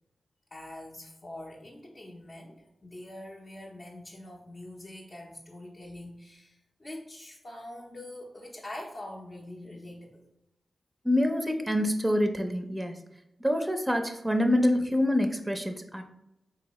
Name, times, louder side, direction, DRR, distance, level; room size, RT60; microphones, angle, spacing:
voice 1, 0.5-10.3, left 1 dB, 45° left, -4 dB, 0.7 m, -44 dB
voice 2, 11.0-13.0 13.4-16.0, left 1 dB, 10° right, 5 dB, 0.5 m, -26 dB
3.7 x 2.7 x 3.0 m, 0.83 s
cardioid pair, 50°, 0 cm